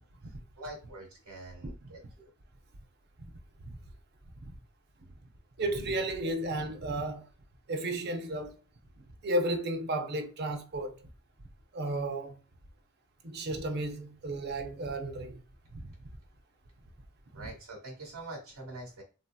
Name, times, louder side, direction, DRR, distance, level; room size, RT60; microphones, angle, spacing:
voice 1, 0.3-2.3 17.3-19.0, right 2 dB, 85° right, 1.2 m, -45 dB
voice 2, 5.6-7.3 7.7-8.6 9.0-11.0 11.7-12.4 13.2-15.4 15.7-15.9 17.3-17.5, right 1 dB, 50° right, 0.6 m, -33 dB
3.7 x 2.7 x 2.2 m
head